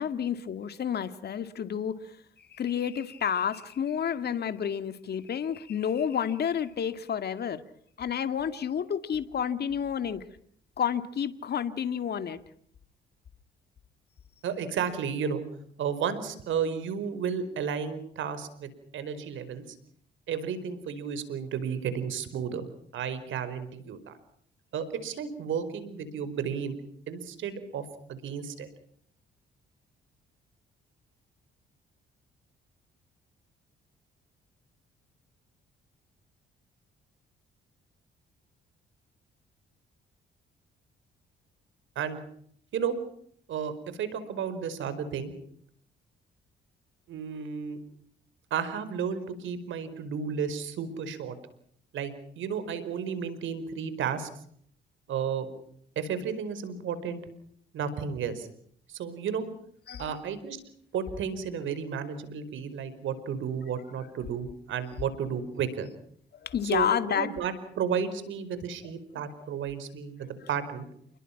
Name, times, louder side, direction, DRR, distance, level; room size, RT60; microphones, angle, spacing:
voice 1, 0.0-7.6 8.0-10.2 10.8-12.4 59.9-60.2 66.3-67.3 69.1-69.5 70.2-70.3, left 8 dB, 55° left, 10 dB, 2.1 m, -30 dB
voice 2, 14.4-15.4 15.8-19.6 20.3-22.7 22.9-24.1 24.7-26.8 27.1-27.8 28.1-28.7 41.9-42.2 42.7-43.0 43.5-45.3 47.1-47.8 48.5-51.4 51.9-54.3 55.1-55.5 55.9-57.2 57.7-58.5 58.9-59.4 60.0-60.6 60.9-65.9 66.7-66.9 67.1-70.9, right 7 dB, 75° right, 13 dB, 5.0 m, -32 dB
29.0 x 22.0 x 6.0 m, 0.66 s
cardioid pair, 90°, 20 cm